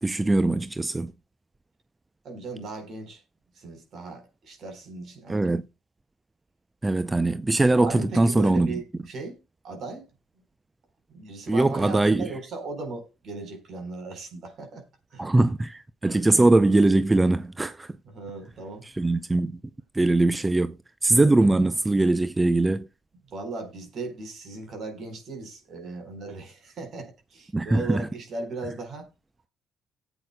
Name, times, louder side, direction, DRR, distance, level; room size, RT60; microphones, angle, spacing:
voice 1, 0.0-1.1 5.3-5.6 6.8-8.8 11.5-12.3 15.2-17.9 18.8-19.6 19.9-20.8 21.0-22.9 27.5-28.1, right 2 dB, 20° right, 0.5 m, -21 dB
voice 2, 2.2-3.2 3.5-5.4 7.7-9.4 9.6-10.1 11.1-14.9 15.1-15.3 18.0-18.9 23.3-29.1, right 3 dB, 60° right, 4.4 m, -37 dB
18.5 x 8.1 x 2.2 m
supercardioid pair, 65°, 0 cm